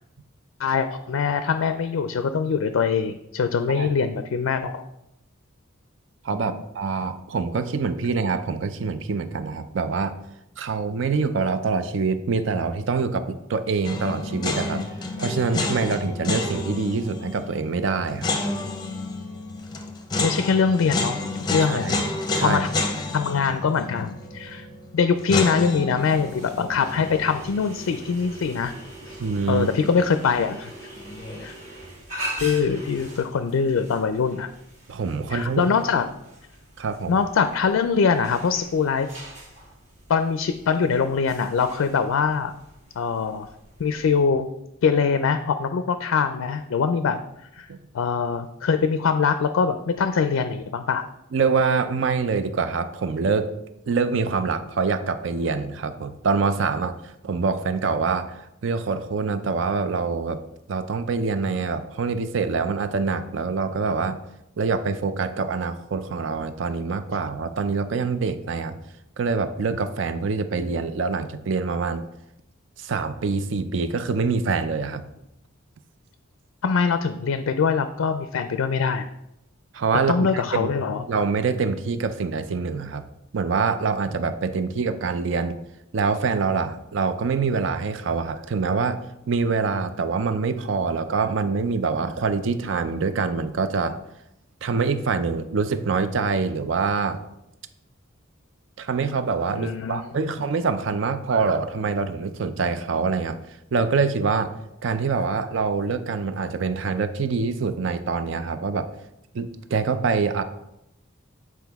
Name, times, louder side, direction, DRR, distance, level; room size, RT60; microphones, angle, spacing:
voice 1, 0.6-4.8 6.3-6.6 20.2-21.2 21.5-21.9 22.4-22.7 23.1-24.7 24.9-28.7 29.5-30.7 31.4-31.5 32.4-34.5 35.3-36.1 37.1-39.1 40.1-42.5 43.0-43.5 43.8-44.5 44.8-47.2 47.5-47.7 47.9-51.0 76.6-79.1 80.1-81.0 99.5-100.3, left 5 dB, 80° left, 9 dB, 0.4 m, -23 dB
voice 2, 6.2-10.2 10.6-14.8 15.2-18.3 21.6-22.1 22.3-22.6 29.2-29.7 34.9-35.7 36.8-37.1 47.7-47.8 51.3-53.5 53.9-57.0 57.2-60.4 60.7-64.2 64.6-68.8 69.2-72.0 72.8-75.0 79.7-80.7 81.1-83.0 83.3-85.6 85.9-89.0 89.3-94.0 94.6-97.2 98.8-103.4 103.7-104.5 104.8-108.9 109.3-110.4, right 4 dB, 65° right, 11 dB, 0.5 m, -25 dB
sound 1, 13.8-28.9 29.1-29.2 31.0-31.5, left 2 dB, 20° left, 0.6 m, -30 dB
sound 2, 26.0-44.2, right 1 dB, 35° right, 1.4 m, -42 dB
7.8 x 4.6 x 3.5 m, 0.86 s
head